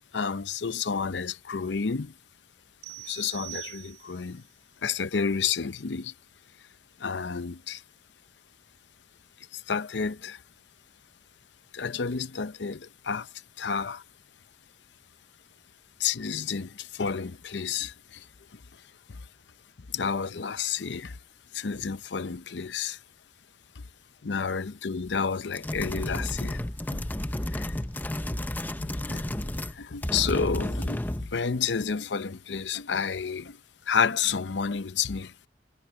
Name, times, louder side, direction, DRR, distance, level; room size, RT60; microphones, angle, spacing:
voice 1, 0.1-2.1 3.0-4.4 4.8-6.1 7.0-7.8 9.5-10.4 11.7-14.0 16.0-18.3 18.5-18.6 19.1-19.2 19.9-21.2 21.5-23.0 23.8-23.9 24.2-26.6 26.9-27.0 27.5-27.8 29.0-29.4 29.7-33.6 33.9-35.3, left 6 dB, 85° left, 0.7 m, -30 dB
sound 1, 2.8-4.4, right 27 dB, 80° right, 2.6 m, -43 dB
sound 2, 25.5-29.8 30.0-31.3, left 1 dB, 10° left, 0.6 m, -32 dB
head